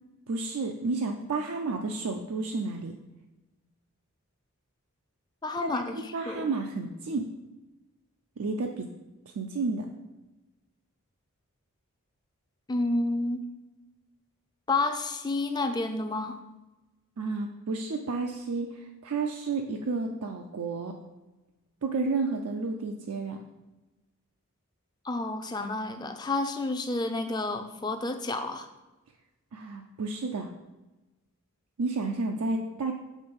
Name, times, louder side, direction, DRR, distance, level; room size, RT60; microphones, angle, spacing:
voice 1, 0.3-2.9 5.6-7.3 8.4-8.9 9.3-9.9 17.2-21.0 21.8-23.4 29.5-30.5 31.8-32.9, right 3 dB, 85° right, 3 dB, 0.5 m, -31 dB
voice 2, 5.4-6.0 6.3-6.5 12.7-13.4 14.7-16.4 25.0-28.7, left 2 dB, 20° left, 7 dB, 0.4 m, -30 dB
7.3 x 3.9 x 5.2 m, 1.1 s
head